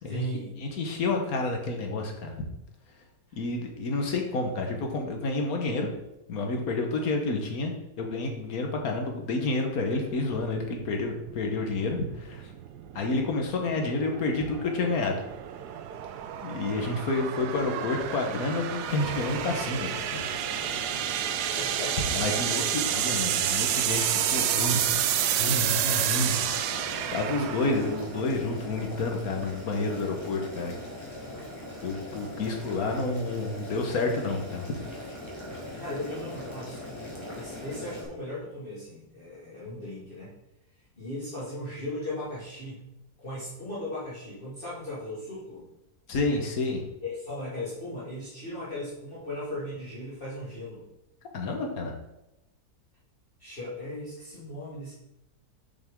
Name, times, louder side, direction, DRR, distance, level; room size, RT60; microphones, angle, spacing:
voice 1, 0.0-0.5 3.3-3.4 7.0-7.1 21.5-23.1 35.7-37.0 37.3-40.3 41.0-42.8 43.2-45.7 47.0-50.8 53.4-54.9, left 1 dB, 35° left, -9 dB, 1.9 m, -37 dB
voice 2, 0.6-2.3 3.3-5.9 6.3-12.5 12.9-15.2 16.4-20.2 22.1-22.6 22.9-25.0 25.4-30.7 31.8-34.8 46.1-46.8 51.3-51.9, left 3 dB, 65° left, 3 dB, 1.5 m, -29 dB
sound 1, 10.1-29.1, right 10 dB, 85° right, 1.1 m, -30 dB
Boiling, 18.8-38.0, left 1 dB, 20° left, 1.6 m, -40 dB
7.1 x 6.1 x 3.6 m, 0.89 s
omnidirectional pair, 1.7 m